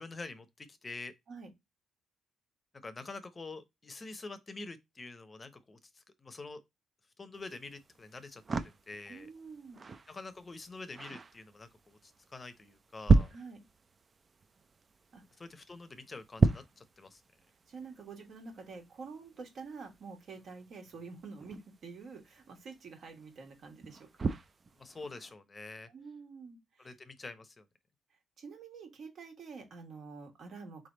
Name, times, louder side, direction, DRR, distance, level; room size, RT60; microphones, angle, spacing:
voice 1, 0.0-1.1 2.8-6.6 7.2-9.3 10.1-13.3 15.4-17.2 24.8-25.9 26.8-27.6, left 3 dB, 30° left, 0.7 m, -46 dB
sound 1, 7.3-25.3, right 4 dB, 35° right, 0.5 m, -36 dB
voice 2, 9.1-9.8 13.3-13.6 15.1-15.4 17.7-24.1 25.9-27.0 28.4-30.9, right 4 dB, 60° right, 1.7 m, -48 dB
3.7 x 3.3 x 3.8 m
cardioid pair, 90°, 0 cm